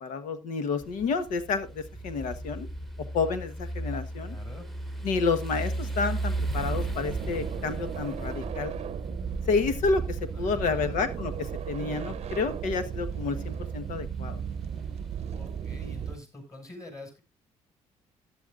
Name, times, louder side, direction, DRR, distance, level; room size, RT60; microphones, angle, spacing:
voice 1, 0.0-2.7 3.1-4.4 5.0-8.7 9.5-14.4, left 4 dB, 80° left, 10 dB, 1.3 m, -30 dB
sound 1, 0.8-16.2, right 2 dB, ahead, 1.2 m, -37 dB
voice 2, 4.3-4.7 10.3-10.9 15.3-17.2, left 1 dB, 25° left, 3 dB, 6.3 m, -45 dB
sound 2, 6.5-16.2, right 8 dB, 55° right, 0.7 m, -36 dB
14.5 x 10.5 x 2.5 m, 0.25 s
cardioid pair, 95°, 13 cm